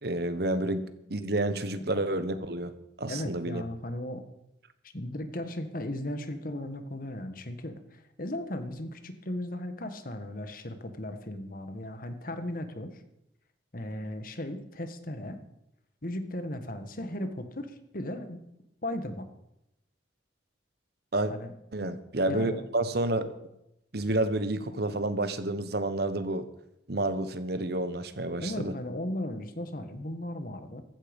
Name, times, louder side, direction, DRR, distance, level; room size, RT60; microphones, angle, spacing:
voice 1, 0.0-2.7 3.0-3.6 21.1-21.3 21.7-23.3 23.9-26.5 26.9-28.7, right 2 dB, 60° right, 12 dB, 1.2 m, -29 dB
voice 2, 3.1-4.2 4.8-13.0 13.7-15.4 16.0-18.4 18.8-19.3 21.3-21.5 22.2-22.6 28.4-30.8, left 1 dB, 50° left, 9 dB, 1.6 m, -36 dB
15.5 x 13.5 x 5.4 m, 0.84 s
head